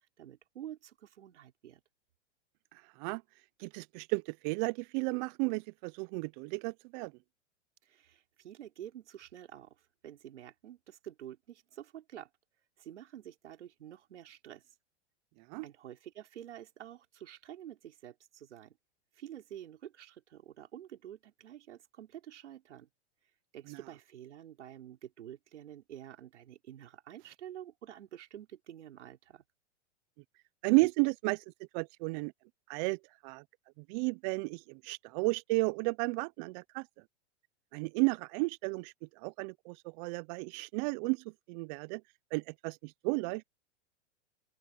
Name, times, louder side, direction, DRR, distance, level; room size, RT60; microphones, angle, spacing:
voice 1, 0.0-1.8 7.8-9.7 10.0-12.3 12.8-14.7 15.6-18.8 19.1-22.9 23.5-29.4, right 11 dB, 80° right, 4.3 m, -49 dB
voice 2, 2.7-3.2 3.6-7.1 15.4-15.7 23.7-23.8 30.6-31.4 31.7-32.3 32.7-33.4 33.8-36.9 37.7-42.0 42.3-43.5, right 28 dB, 40° right, 0.6 m, -33 dB
open air
hypercardioid pair, 125°, 34 cm